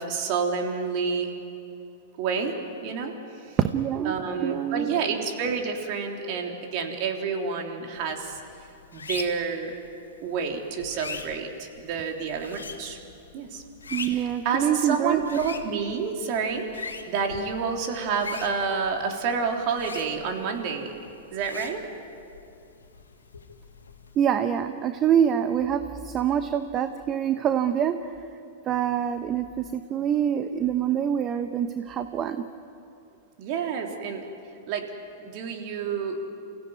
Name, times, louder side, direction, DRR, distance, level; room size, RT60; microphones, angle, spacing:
voice 1, 0.0-1.3 2.2-3.2 4.0-8.4 8.9-9.8 10.2-13.0 13.3-13.6 14.0-20.9 21.3-21.8 33.4-34.2 34.7-34.9 35.2-36.3, right 5 dB, 50° right, 2 dB, 3.4 m, -29 dB
voice 2, 3.7-4.2 4.4-4.9 13.9-15.4 24.2-28.1 28.7-32.4, right 9 dB, 30° right, 9 dB, 1.0 m, -25 dB
sound 1, 7.9-24.3, left 4 dB, 85° left, 2.4 m, -43 dB
28.5 x 16.5 x 9.4 m, 2.6 s
hypercardioid pair, 100°, 0 cm